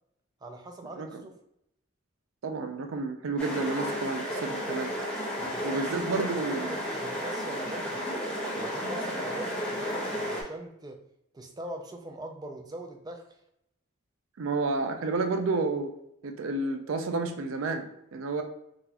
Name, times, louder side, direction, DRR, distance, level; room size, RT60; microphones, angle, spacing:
voice 1, 0.4-1.3 5.4-8.1 8.5-11.0 11.3-13.4, right 1 dB, 20° right, 4 dB, 0.3 m, -42 dB
voice 2, 2.4-4.9 5.6-6.8 14.4-15.9 16.2-18.4, right 3 dB, 85° right, 5 dB, 0.4 m, -30 dB
sound 1, 3.4-10.4, equal, 5° left, 0.9 m, -33 dB
3.9 x 2.4 x 2.8 m, 0.79 s
head